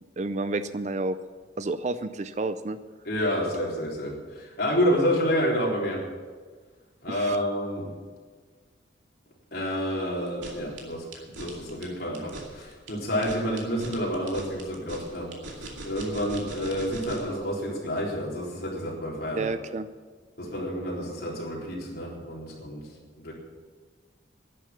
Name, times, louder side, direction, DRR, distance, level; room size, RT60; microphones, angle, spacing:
voice 1, 0.2-1.2 1.6-2.8 7.1-7.4 19.3-19.9, right 2 dB, 35° right, 12 dB, 0.4 m, -30 dB
voice 2, 3.1-6.0 7.0-7.9 9.5-11.1 11.4-19.5 20.4-22.8 23.2-23.3, equal, 50° left, -4 dB, 3.9 m, -29 dB
sound 1, 10.3-17.4, right 2 dB, 80° right, 2.5 m, -41 dB
11.5 x 10.5 x 7.3 m, 1.5 s
head